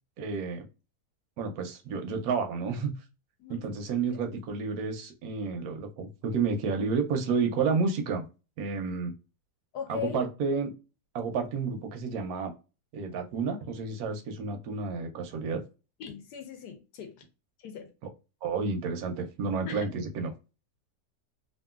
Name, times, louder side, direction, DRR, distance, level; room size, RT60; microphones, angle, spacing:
voice 1, 0.2-0.7 1.4-3.0 3.5-8.2 8.6-9.1 9.9-10.7 11.1-12.5 12.9-15.6 18.0-18.1 18.4-20.3, right 5 dB, 70° right, 0.9 m, -30 dB
voice 2, 9.7-10.2 16.0-17.2 17.6-17.9 19.7-19.9, left 7 dB, 75° left, 1.1 m, -39 dB
2.9 x 2.5 x 2.3 m
omnidirectional pair, 1.8 m